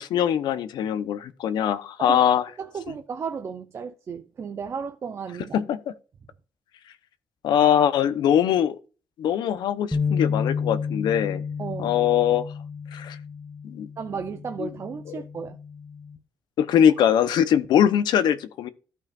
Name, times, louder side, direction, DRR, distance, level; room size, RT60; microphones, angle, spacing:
voice 1, 0.0-2.4 5.5-5.9 7.4-8.8 9.2-11.4 11.8-12.5 12.9-13.2 13.6-13.9 14.6-14.7 15.1-15.2 16.6-18.7, left 9 dB, 90° left, 0.9 m, -22 dB
voice 2, 2.6-5.6 11.6-12.0 14.0-15.6, right 6 dB, 40° right, 0.7 m, -34 dB
sound 1, 9.9-16.2, left 6 dB, 5° left, 0.8 m, -31 dB
15.0 x 5.6 x 2.5 m
cardioid pair, 160°, 7 cm